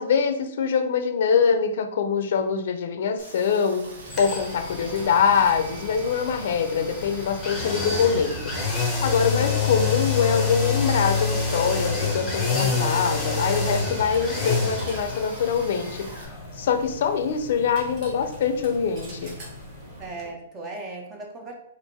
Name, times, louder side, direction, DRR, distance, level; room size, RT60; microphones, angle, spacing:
voice 1, 0.0-3.9 4.2-8.5 9.0-16.1 16.6-19.3, left 6 dB, 60° left, 8 dB, 0.5 m, -24 dB
Rain, 3.2-16.3, right 3 dB, 75° right, 1.0 m, -46 dB
Coin (dropping), 3.7-20.4, right 1 dB, 35° right, 1.2 m, -44 dB
sound 1, 4.1-19.9 20.2-20.3, left 4 dB, 10° left, 0.9 m, -28 dB
voice 2, 9.2-9.8 20.0-21.5, right 3 dB, 20° right, 1 dB, 0.7 m, -38 dB
3.5 x 2.5 x 4.2 m, 0.73 s
hypercardioid pair, 160°, 0 cm